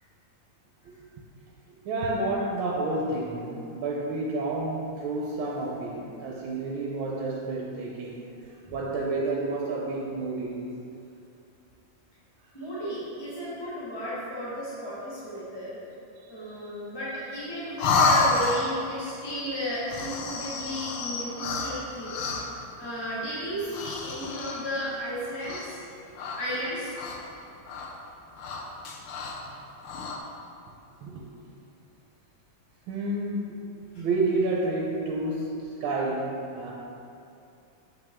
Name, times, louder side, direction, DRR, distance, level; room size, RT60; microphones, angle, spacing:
voice 1, 1.8-10.7 16.2-16.7 31.0-31.2 32.9-33.6 34.0-36.7, right 2 dB, 75° right, -3 dB, 1.5 m, -30 dB
voice 2, 12.5-15.8 16.3-22.4 22.8-25.8 26.3-26.9 33.9-34.1, equal, 15° left, -9 dB, 0.9 m, -34 dB
sound 1, 17.8-18.9 19.8-22.6 23.6-24.8 25.4-25.9 26.2-27.4 27.7-27.9 28.3-29.4 29.8-30.2, left 3 dB, 80° left, 1.6 m, -29 dB
7.2 x 5.9 x 3.6 m, 2.6 s
omnidirectional pair, 2.3 m